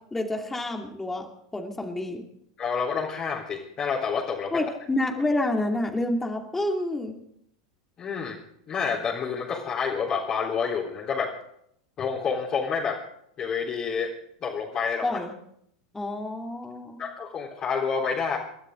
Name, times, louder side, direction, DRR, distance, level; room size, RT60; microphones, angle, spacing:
voice 1, 0.1-1.3 1.5-2.2 4.5-7.1 15.0-15.3 15.9-17.0, left 1 dB, 10° left, 2 dB, 2.6 m, -28 dB
voice 2, 2.6-4.6 8.0-8.4 8.7-11.3 12.0-13.0 13.4-14.1 14.4-15.0 17.0-18.4, left 6 dB, 35° left, -4 dB, 3.9 m, -28 dB
28.5 x 12.5 x 3.9 m, 0.71 s
hypercardioid pair, 90°, 2 cm